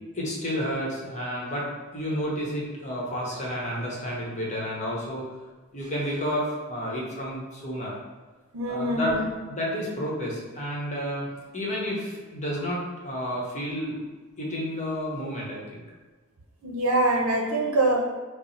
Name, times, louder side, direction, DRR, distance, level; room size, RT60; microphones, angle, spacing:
voice 1, 0.1-5.3 5.7-7.9 8.7-9.1 9.5-14.0 14.4-15.8, equal, 35° left, -4 dB, 0.9 m, -31 dB
voice 2, 8.5-9.2 16.6-18.1, right 2 dB, 70° right, 0 dB, 0.7 m, -24 dB
5.1 x 2.0 x 3.1 m, 1.3 s
head